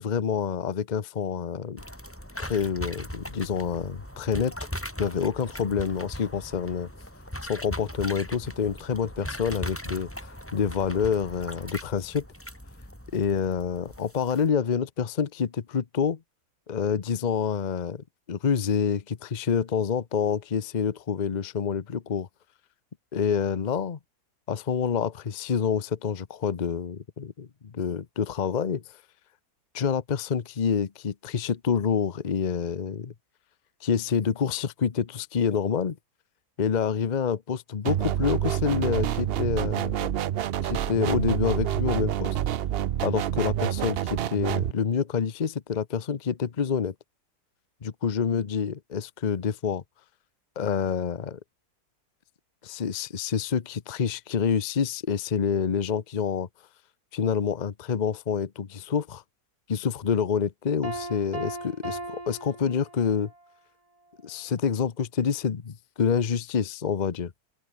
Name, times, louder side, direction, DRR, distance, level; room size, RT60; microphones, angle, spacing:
voice 1, 0.0-1.8 2.4-4.5 5.0-6.9 7.4-10.1 10.5-12.3 13.1-16.2 16.7-22.3 23.1-24.0 24.5-28.8 29.7-33.1 33.8-36.0 36.6-40.1 40.6-42.4 43.0-46.9 47.8-49.8 50.6-51.4 52.6-56.5 57.1-59.2 59.7-63.3 64.2-67.3, left 6 dB, 35° left, 0.9 m, -27 dB
sound 1, 1.8-14.5, equal, 10° left, 6.6 m, -39 dB
sound 2, 37.8-44.7, right 11 dB, 70° right, 0.5 m, -27 dB
Piano, 60.8-63.4, right 2 dB, 20° right, 2.9 m, -37 dB
open air
omnidirectional pair, 1.7 m